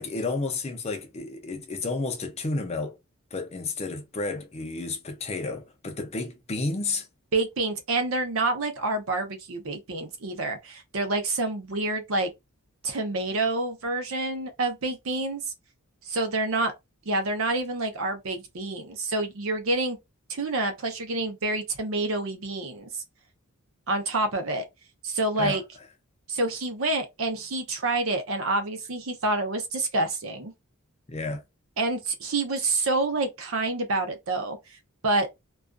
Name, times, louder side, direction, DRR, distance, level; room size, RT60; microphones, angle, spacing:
voice 1, 0.0-3.0 3.3-7.1 25.4-25.6 31.1-31.4, left 3 dB, 30° left, 0.5 m, -31 dB
voice 2, 7.3-12.3 12.8-15.4 16.0-16.7 17.1-20.0 20.3-23.0 23.9-24.6 25.0-25.6 26.3-30.5 31.8-34.6 35.0-35.3, right 2 dB, 65° right, 0.7 m, -28 dB
2.4 x 2.3 x 2.3 m
head